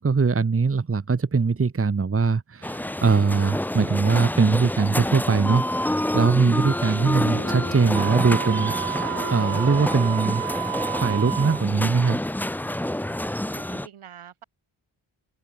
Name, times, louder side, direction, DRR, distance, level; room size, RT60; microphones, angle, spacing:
voice 1, 0.0-10.4 11.0-12.2, right 4 dB, 30° right, 1.1 m, -22 dB
sound 1, 2.6-13.9, left 1 dB, 5° left, 0.6 m, -28 dB
voice 2, 6.9-7.2 13.5-14.4, right 9 dB, 85° right, 3.6 m, -46 dB
sound 2, 7.0-10.4, left 3 dB, 30° left, 5.6 m, -37 dB
Wind instrument woodwind instrument, 7.9-11.7, right 12 dB, 60° right, 0.7 m, -31 dB
open air
cardioid pair, 40°, 49 cm